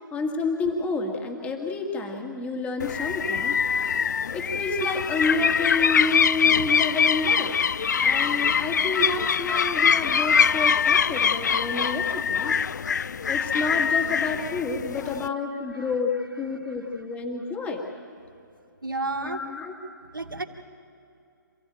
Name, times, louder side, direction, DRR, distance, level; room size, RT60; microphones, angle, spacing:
voice 1, 0.0-3.6 4.3-7.6 8.0-12.6 13.3-17.9 19.2-19.7, left 3 dB, 10° left, 2 dB, 2.0 m, -29 dB
sound 1, 2.8-15.3, left 6 dB, 60° left, 0.4 m, -23 dB
voice 2, 7.8-8.2 13.1-13.3 15.1-15.2 15.8-15.9 16.5-16.8 18.8-19.4 20.1-20.4, right 2 dB, 85° right, 5 dB, 2.2 m, -34 dB
27.0 x 16.0 x 9.1 m, 2.5 s
figure-of-eight pair, 135°, 11 cm